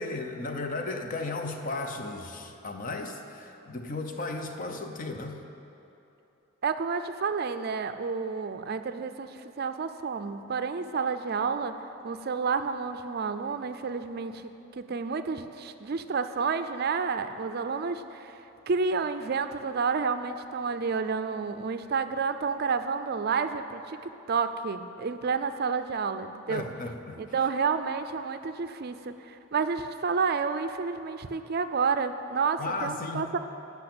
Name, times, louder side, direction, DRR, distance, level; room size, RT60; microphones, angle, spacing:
voice 1, 0.0-5.4 26.5-27.2 32.6-33.3, left 3 dB, 40° left, 5 dB, 0.8 m, -35 dB
voice 2, 6.6-26.7 27.2-33.4, right 5 dB, 50° right, 10 dB, 0.4 m, -30 dB
12.0 x 5.7 x 8.8 m, 2.9 s
head